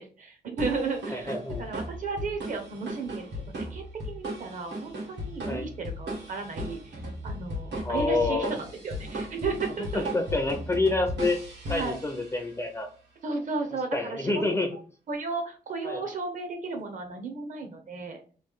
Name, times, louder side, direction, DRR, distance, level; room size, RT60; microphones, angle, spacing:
voice 1, 0.0-3.3 3.6-10.1 11.7-12.0 13.2-14.4 14.7-14.8 15.1-18.2, right 4 dB, 45° right, 5 dB, 0.7 m, -34 dB
sound 1, 0.6-12.5, equal, 75° right, 1.5 m, -36 dB
voice 2, 1.1-1.6 5.4-5.7 7.8-8.6 9.9-11.4 11.7-12.9 13.9-14.7 15.8-16.0, left 2 dB, 15° left, 4 dB, 0.4 m, -27 dB
3.1 x 2.4 x 3.5 m, 0.39 s
wide cardioid pair, 175°, 18 cm